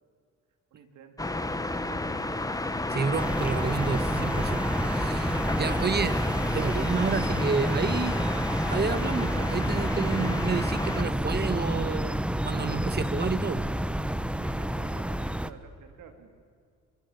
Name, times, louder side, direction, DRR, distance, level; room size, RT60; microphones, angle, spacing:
voice 1, 0.7-2.6 14.4-16.3, right 6 dB, 85° right, 6 dB, 3.4 m, -50 dB
sound 1, 1.2-11.0, left 2 dB, 10° left, 1.7 m, -32 dB
voice 2, 2.9-6.2 6.5-8.3 8.7-13.7, right 5 dB, 35° right, 13 dB, 1.6 m, -30 dB
sound 2, 3.2-15.5, right 1 dB, 5° right, 1.0 m, -29 dB
25.5 x 23.0 x 8.8 m, 2.2 s
cardioid pair, 90°, 30 cm